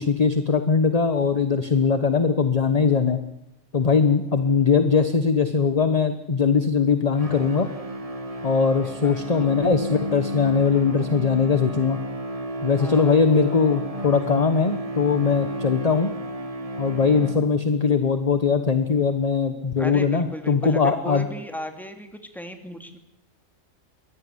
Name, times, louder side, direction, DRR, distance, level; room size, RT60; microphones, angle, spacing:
voice 1, 0.0-3.2 3.7-7.7 8.4-12.0 12.6-16.1 16.8-21.3, left 5 dB, 30° left, 9 dB, 1.2 m, -21 dB
sound 1, 7.1-17.9, right 1 dB, 25° right, 1.5 m, -32 dB
voice 2, 9.0-9.4 12.8-13.2 19.8-23.0, equal, ahead, 5 dB, 2.6 m, -36 dB
23.0 x 17.0 x 9.9 m, 0.85 s
omnidirectional pair, 1.4 m